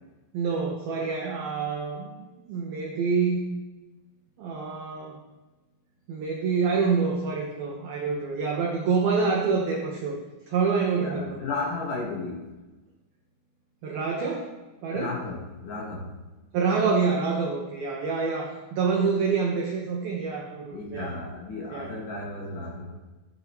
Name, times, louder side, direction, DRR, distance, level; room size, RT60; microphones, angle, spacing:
voice 1, 0.3-2.2 2.5-3.4 4.4-5.2 6.1-10.2 10.5-11.4 13.8-14.5 14.8-15.1 16.5-21.1 21.7-21.9, right 5 dB, 90° right, 0 dB, 2.1 m, -26 dB
voice 2, 10.9-12.4 14.9-16.1 20.7-23.0, left 3 dB, 65° left, -2 dB, 2.1 m, -34 dB
14.0 x 10.0 x 3.0 m, 1.1 s
omnidirectional pair, 5.9 m